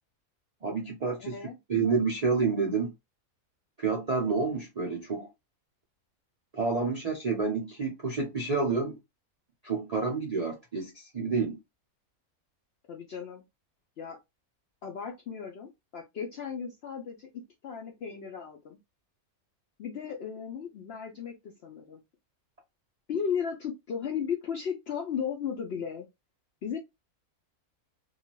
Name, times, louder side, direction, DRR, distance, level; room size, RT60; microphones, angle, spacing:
voice 1, 0.6-1.4 1.7-2.9 3.8-5.3 6.5-9.0 9.6-11.6, right 4 dB, 55° right, 0.4 m, -29 dB
voice 2, 1.2-1.6 12.9-13.4 14.0-14.2 14.8-18.8 19.8-22.0 23.1-26.1 26.6-26.8, left 7 dB, 70° left, 0.6 m, -35 dB
2.7 x 2.4 x 2.9 m
omnidirectional pair, 1.5 m